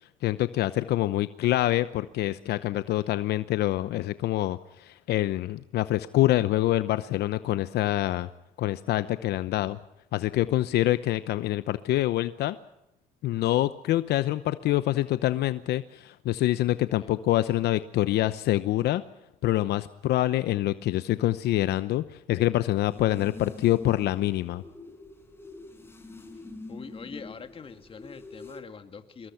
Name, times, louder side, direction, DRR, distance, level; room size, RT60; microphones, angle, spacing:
voice 1, 0.2-8.3 8.6-9.8 10.1-12.6 13.2-19.0 19.4-24.6, left 15 dB, 75° left, 13 dB, 0.9 m, -26 dB
sound 1, 22.9-28.6, left 2 dB, 15° left, 5.0 m, -45 dB
voice 2, 26.7-29.3, left 5 dB, 35° left, 8 dB, 2.3 m, -44 dB
25.5 x 21.5 x 5.8 m, 0.83 s
cardioid pair, 110°, 17 cm